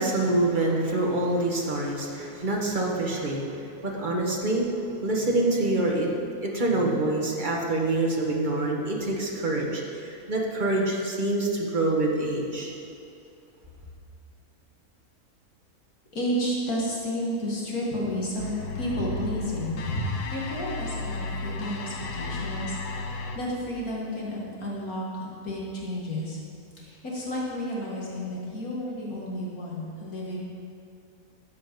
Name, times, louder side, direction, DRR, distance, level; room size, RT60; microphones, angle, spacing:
voice 1, 0.0-4.7 5.0-6.1 6.4-12.7, right 2 dB, 30° right, -2 dB, 1.6 m, -26 dB
voice 2, 16.1-26.4 26.8-30.4, equal, 65° left, -4 dB, 2.2 m, -31 dB
sound 1, 18.4-23.4, left 3 dB, 90° left, 1.5 m, -34 dB
12.5 x 8.1 x 5.3 m, 2.5 s
omnidirectional pair, 1.6 m